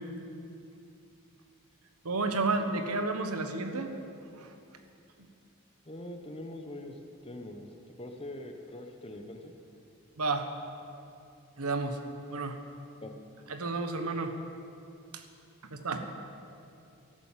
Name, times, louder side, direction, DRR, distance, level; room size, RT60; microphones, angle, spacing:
voice 1, 2.0-3.9 4.3-4.5 10.2-10.5 11.6-12.0 12.3-12.6 13.5-14.3 15.7-16.1, right 3 dB, 85° right, 7 dB, 1.3 m, -31 dB
voice 2, 5.8-7.7 8.0-9.5 13.0-13.1, left 1 dB, 25° left, 4 dB, 1.1 m, -43 dB
13.5 x 12.0 x 7.4 m, 2.6 s
head